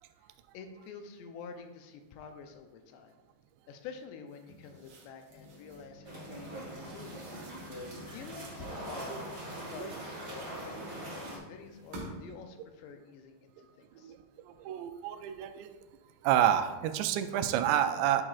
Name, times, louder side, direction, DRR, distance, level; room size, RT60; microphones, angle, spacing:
voice 1, 0.5-3.2 3.7-7.2 7.8-14.1, left 5 dB, 85° left, 6 dB, 2.8 m, -48 dB
sound 1, 4.3-6.0 6.8-8.7 9.3-10.9 11.6-12.4, right 2 dB, 60° right, 2.6 m, -51 dB
sound 2, 5.3-12.0, left 4 dB, 15° left, 0.7 m, -55 dB
sound 3, 6.0-11.4, right 1 dB, 30° right, 1.2 m, -42 dB
voice 2, 14.5-15.8 16.2-18.2, right 11 dB, 85° right, 8 dB, 2.7 m, -28 dB
9.8 x 6.1 x 2.4 m, 1.2 s
omnidirectional pair, 5.0 m